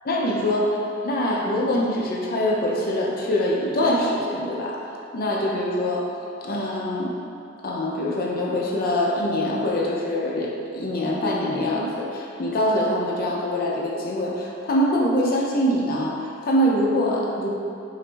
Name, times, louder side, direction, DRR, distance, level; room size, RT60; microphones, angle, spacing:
voice 1, 0.1-4.8 5.1-6.0 6.4-7.1 7.6-17.5, left 1 dB, 50° left, -2 dB, 0.5 m, -24 dB
5.6 x 2.0 x 3.4 m, 2.6 s
head